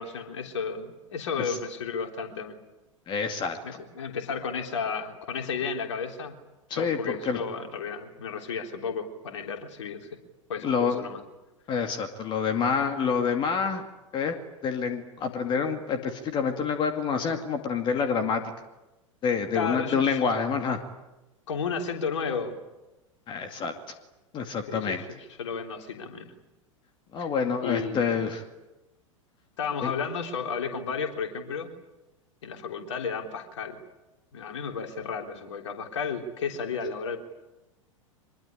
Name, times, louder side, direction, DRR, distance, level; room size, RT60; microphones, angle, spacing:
voice 1, 0.0-2.6 3.6-6.3 6.8-10.1 10.5-11.2 19.5-20.2 21.5-22.6 24.7-26.3 27.2-27.3 27.6-28.1 29.6-31.7 32.4-33.8 34.3-37.2, left 5 dB, 60° left, 4 dB, 3.6 m, -33 dB
voice 2, 3.1-3.6 6.7-7.4 10.6-11.1 11.7-13.8 14.1-14.4 14.6-18.4 19.2-20.8 23.3-23.7 24.3-25.0 27.1-28.4 29.8-29.9, left 6 dB, 30° left, 6 dB, 2.3 m, -27 dB
24.5 x 22.5 x 10.0 m, 1.0 s
figure-of-eight pair, 90°, 17 cm